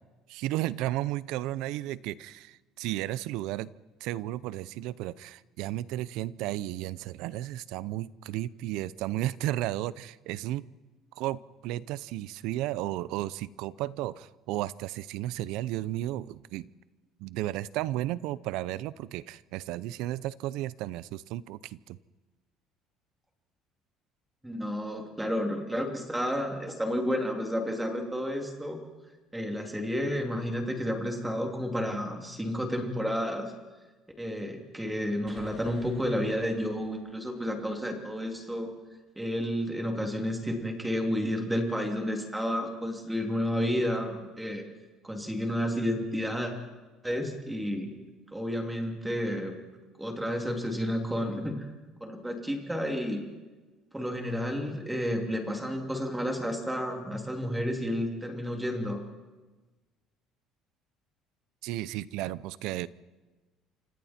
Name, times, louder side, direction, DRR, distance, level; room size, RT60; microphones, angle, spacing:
voice 1, 0.3-3.7 4.0-10.7 11.2-16.7 17.2-22.0 61.6-62.9, right 15 dB, 70° right, 19 dB, 0.7 m, -33 dB
voice 2, 24.4-28.8 29.3-33.5 34.2-38.7 39.2-44.6 45.0-46.5 47.0-47.9 48.3-49.5 50.0-51.7 52.0-53.2 53.9-59.0, equal, 5° right, 3 dB, 2.9 m, -31 dB
sound 1, 35.3-38.7, right 3 dB, 20° right, 5.0 m, -55 dB
28.5 x 26.0 x 4.4 m, 1.3 s
cardioid pair, 160°, 0 cm